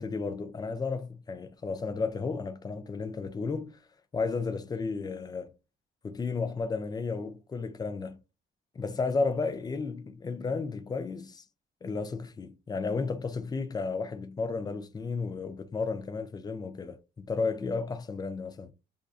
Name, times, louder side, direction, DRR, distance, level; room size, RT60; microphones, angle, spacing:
voice 1, 0.0-3.8 4.1-5.5 6.0-8.2 8.8-11.4 11.8-18.7, left 4 dB, 20° left, 0.4 m, -33 dB
2.5 x 2.4 x 2.3 m
cardioid pair, 90°, 20 cm